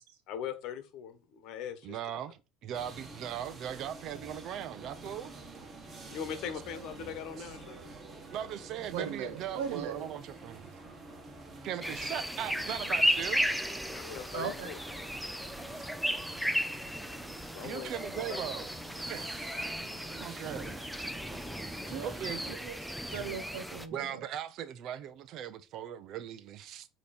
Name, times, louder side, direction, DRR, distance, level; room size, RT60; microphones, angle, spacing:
voice 1, 0.3-2.0 5.0-5.1 6.1-7.9 13.9-14.8 17.5-18.7, left 8 dB, 60° left, 1.3 m, -41 dB
voice 2, 1.8-5.3 8.3-10.7 11.6-13.5 17.6-18.7 19.1-19.3 20.2-20.8 22.0-22.4 23.9-26.9, right 10 dB, 55° right, 0.7 m, -39 dB
sound 1, 2.7-22.6, right 3 dB, 25° right, 1.5 m, -48 dB
voice 3, 8.9-10.0 14.3-14.7 21.9-22.1 22.5-22.8 23.1-24.2, right 7 dB, 90° right, 1.3 m, -38 dB
sound 2, 11.8-23.9, equal, ahead, 0.6 m, -35 dB
8.3 x 3.2 x 4.3 m
supercardioid pair, 120°, 0 cm